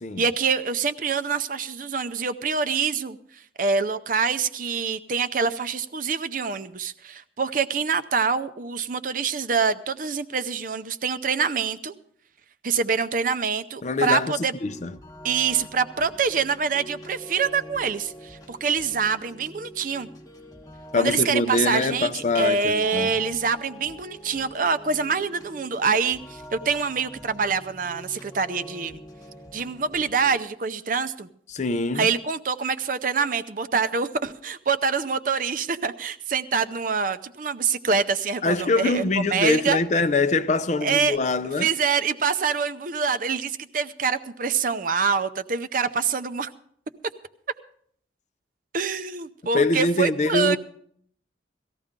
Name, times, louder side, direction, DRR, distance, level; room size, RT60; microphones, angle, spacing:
voice 1, 0.2-3.2 3.6-11.9 12.6-14.5 15.2-20.1 20.9-29.0 29.5-31.3 31.9-39.8 40.8-41.2 41.6-46.5 48.7-50.6, right 5 dB, 45° right, 0.6 m, -25 dB
voice 2, 13.8-14.3 14.6-14.9 20.9-23.1 31.5-32.1 38.4-41.7 49.5-50.6, left 3 dB, 40° left, 0.5 m, -24 dB
sound 1, 14.6-30.4, equal, 20° left, 1.1 m, -45 dB
18.0 x 14.0 x 3.7 m
head